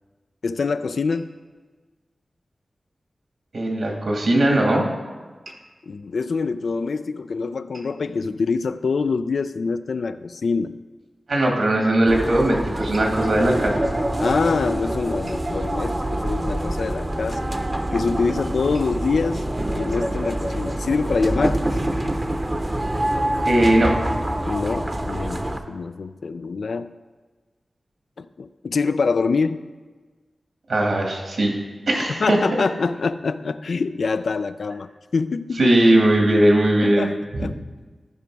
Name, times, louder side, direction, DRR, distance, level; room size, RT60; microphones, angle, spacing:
voice 1, 0.4-1.3 5.8-10.8 14.2-17.5 17.9-19.5 19.7-21.6 24.5-26.9 28.2-29.7 32.1-35.7 36.8-37.6, left 4 dB, 80° left, 12 dB, 0.4 m, -25 dB
voice 2, 3.5-4.9 11.3-13.8 23.5-23.9 30.7-31.5 31.9-32.4 35.6-37.1, right 1 dB, 75° right, 0 dB, 1.9 m, -19 dB
sound 1, 12.1-25.6, right 1 dB, 25° right, 0.7 m, -26 dB
14.0 x 5.2 x 4.7 m, 1.3 s
wide cardioid pair, 75°, 0 cm